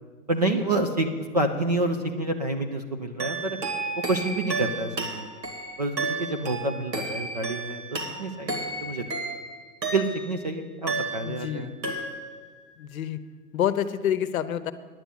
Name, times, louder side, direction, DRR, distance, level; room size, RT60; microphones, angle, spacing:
voice 1, 0.3-1.1 1.3-3.6 4.1-5.3 5.8-9.1 9.9-11.7, right 2 dB, 30° right, 4 dB, 0.4 m, -28 dB
sound 1, 3.2-10.4 10.9-11.6 11.8-12.5, right 3 dB, 90° right, 2.5 m, -32 dB
voice 2, 11.2-11.8 12.8-13.2 13.5-14.7, left 10 dB, 55° left, 12 dB, 0.9 m, -28 dB
10.5 x 7.9 x 8.4 m, 1.5 s
hypercardioid pair, 135°, 49 cm